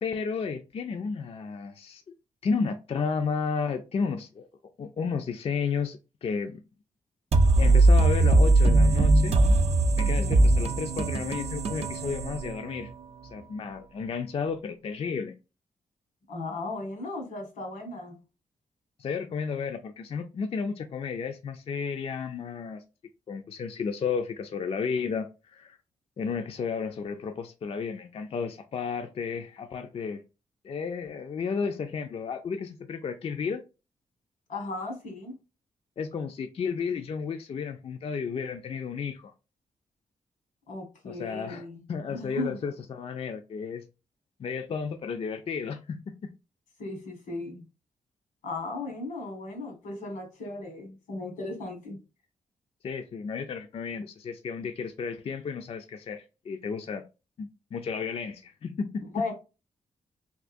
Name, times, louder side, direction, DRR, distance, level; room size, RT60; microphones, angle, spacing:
voice 1, 0.0-2.0 2.4-4.5 4.8-6.6 7.6-9.4 10.0-12.9 13.2-15.4 19.0-22.8 23.3-25.8 26.2-30.2 30.6-33.6 36.0-39.3 41.0-43.9 44.4-46.1 52.8-57.0 57.4-59.0, left 5 dB, 45° left, 0.4 m, -32 dB
sound 1, 7.3-13.0, right 2 dB, 50° right, 0.4 m, -21 dB
voice 2, 10.0-10.6 16.3-18.2 34.5-35.3 40.7-41.8 42.1-42.6 46.8-47.6 48.4-52.0 59.1-59.3, left 2 dB, 90° left, 1.4 m, -36 dB
3.5 x 2.8 x 2.5 m
cardioid pair, 85°, 13 cm